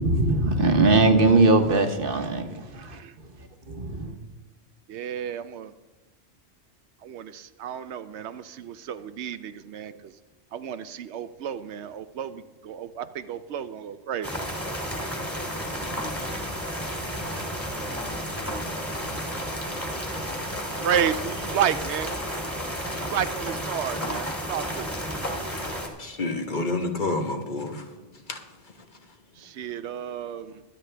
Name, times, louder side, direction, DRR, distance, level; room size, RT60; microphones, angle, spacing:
voice 1, 0.0-3.0 3.4-4.2, right 2 dB, 55° right, 6 dB, 1.2 m, -21 dB
voice 2, 2.7-3.1 4.9-5.7 7.0-10.2 10.5-14.5 15.3-15.6 20.8-22.2 22.9-25.2 29.4-30.6, right 9 dB, 75° right, 12 dB, 0.9 m, -32 dB
sound 1, 14.2-25.9, equal, 10° left, 2.2 m, -32 dB
voice 3, 26.0-27.9 28.3-28.4, left 2 dB, 45° left, 4 dB, 1.2 m, -28 dB
22.5 x 8.9 x 3.3 m, 1.1 s
omnidirectional pair, 1.2 m